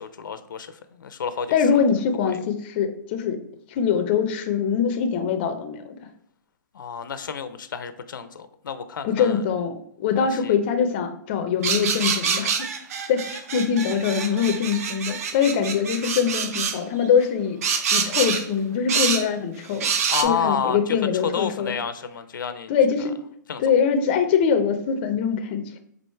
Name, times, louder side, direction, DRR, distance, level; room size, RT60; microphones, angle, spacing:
voice 1, 0.0-1.5 2.2-2.3 6.7-9.4 10.2-10.5 20.1-21.0 21.2-22.7 23.5-23.6, left 6 dB, 85° left, 11 dB, 0.5 m, -30 dB
voice 2, 1.5-3.4 3.7-5.8 9.0-12.7 13.1-19.9 20.2-21.7 22.7-23.2 23.6-25.8, left 7 dB, 30° left, 7 dB, 0.4 m, -23 dB
sound 1, 11.6-16.8 17.6-18.5 18.9-19.3 19.8-20.2, right 6 dB, 50° right, 0.6 m, -26 dB
4.6 x 2.5 x 4.3 m, 0.67 s
hypercardioid pair, 160°, 10 cm